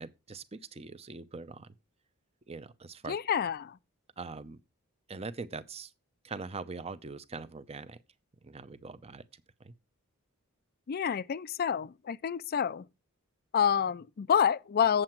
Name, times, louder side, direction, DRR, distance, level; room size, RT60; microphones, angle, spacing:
voice 1, 0.0-1.7 2.5-3.2 4.2-4.6 5.1-5.9 6.2-8.0 8.4-9.2 9.6-9.7, right 4 dB, 30° right, 0.6 m, -42 dB
voice 2, 3.1-3.8 10.9-12.8 13.5-15.0, left 8 dB, 45° left, 0.4 m, -28 dB
7.7 x 7.6 x 4.5 m
head